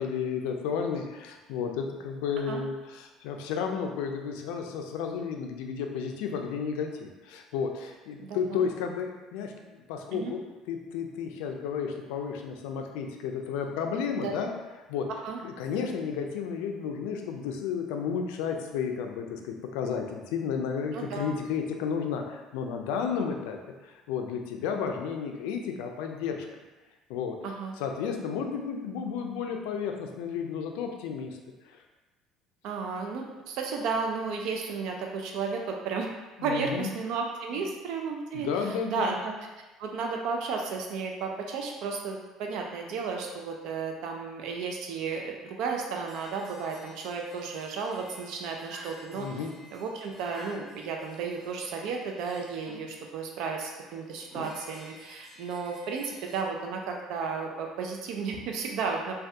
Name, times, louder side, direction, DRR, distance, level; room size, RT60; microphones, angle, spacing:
voice 1, 0.0-14.5 14.9-15.1 15.4-26.5 27.1-27.4 27.8-31.4 31.7-31.8 36.4-36.9 38.3-39.1 49.1-49.5, left 6 dB, 90° left, 3 dB, 0.3 m, -32 dB
voice 2, 8.2-8.6 10.1-10.3 14.2-14.3 15.2-15.4 20.9-21.3 27.4-27.7 32.6-36.1 36.4-39.3 39.8-49.4 49.7-59.2, right 5 dB, 70° right, 1 dB, 0.3 m, -33 dB
sound 1, 46.0-53.0 53.7-56.4, equal, 30° right, 1.0 m, -50 dB
3.3 x 2.2 x 2.7 m, 1.2 s
cardioid pair, 120°, 0 cm